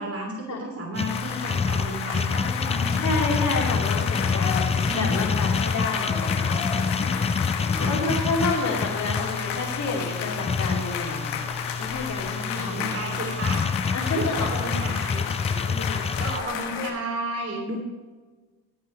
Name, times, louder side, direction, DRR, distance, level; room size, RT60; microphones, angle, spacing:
voice 1, 0.0-3.0 4.8-5.1 7.7-8.4 12.6-13.6 14.1-17.8, right 1 dB, 35° right, 0 dB, 3.1 m, -33 dB
sound 1, 0.9-16.4, left 5 dB, 15° left, 0.4 m, -27 dB
sound 2, 1.1-16.9, left 8 dB, 90° left, 1.5 m, -32 dB
voice 2, 3.0-6.6 7.8-11.4 11.8-12.9 13.9-14.8 15.7-16.1, left 3 dB, 45° left, -2 dB, 4.1 m, -29 dB
16.5 x 10.5 x 3.3 m, 1.4 s
supercardioid pair, 75°, 41 cm